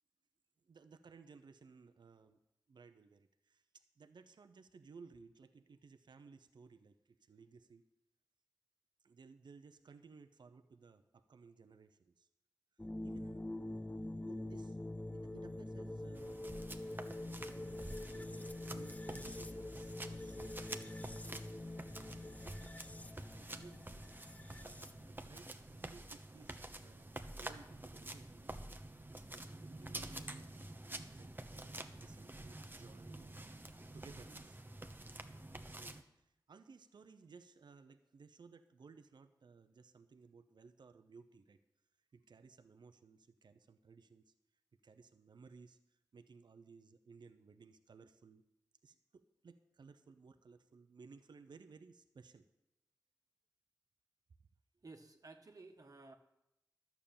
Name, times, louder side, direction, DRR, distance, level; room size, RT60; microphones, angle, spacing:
voice 1, 0.6-2.4 2.7-7.8 9.0-12.3 13.0-13.5 14.2-14.8 15.1-16.8 17.3-17.8 18.1-24.1 24.6-28.6 29.3-30.5 31.0-34.6 35.7-41.6 42.1-44.3 44.8-48.4 48.8-52.5, right 5 dB, 75° right, 9 dB, 0.7 m, -60 dB
sound 1, 12.8-25.1, left 1 dB, 20° left, 0.6 m, -45 dB
sound 2, 16.2-36.0, right 1 dB, 25° right, 1.1 m, -49 dB
voice 2, 54.8-56.1, right 3 dB, 50° right, 5 dB, 1.4 m, -55 dB
11.5 x 7.0 x 8.7 m, 0.85 s
cardioid pair, 45°, 8 cm